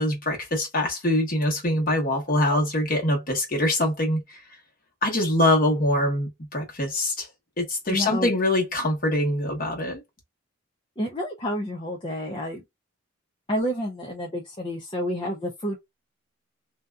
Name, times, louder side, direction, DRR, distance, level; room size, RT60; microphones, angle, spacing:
voice 1, 0.0-4.4 5.0-7.3 7.6-10.0, left 1 dB, 45° left, 1.1 m, -24 dB
voice 2, 7.9-8.3 11.0-12.6 13.5-15.8, equal, 25° left, 0.5 m, -29 dB
2.7 x 2.2 x 2.2 m
head